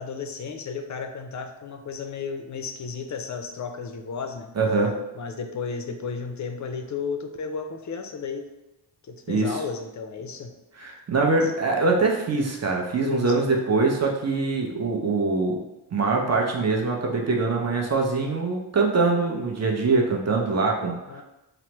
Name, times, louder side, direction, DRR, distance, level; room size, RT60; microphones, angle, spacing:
voice 1, 0.0-4.5 5.2-8.5 9.0-10.5 11.4-11.5 13.0-13.5 21.1-21.2, left 5 dB, 40° left, 6 dB, 0.4 m, -33 dB
voice 2, 4.6-5.0 9.3-9.6 10.8-15.6 15.9-21.2, right 3 dB, 35° right, 0 dB, 0.6 m, -23 dB
3.1 x 2.0 x 2.9 m, 0.94 s
cardioid pair, 55°, 46 cm